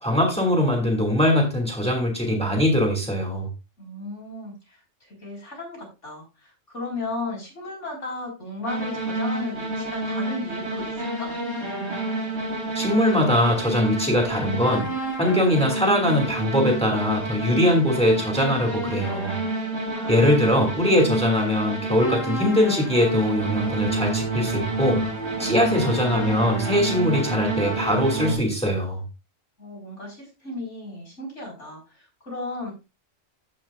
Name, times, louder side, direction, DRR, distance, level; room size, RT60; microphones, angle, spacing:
voice 1, 0.0-3.5 12.7-14.9 15.2-19.4 20.1-25.0 25.4-29.0, left 1 dB, 5° left, 2.7 m, -22 dB
voice 2, 3.8-11.3 19.9-20.6 25.4-25.6 29.6-32.7, left 2 dB, 65° left, 4.8 m, -35 dB
sound 1, 8.7-28.3, right 2 dB, 55° right, 3.4 m, -28 dB
15.5 x 5.8 x 2.4 m
omnidirectional pair, 1.3 m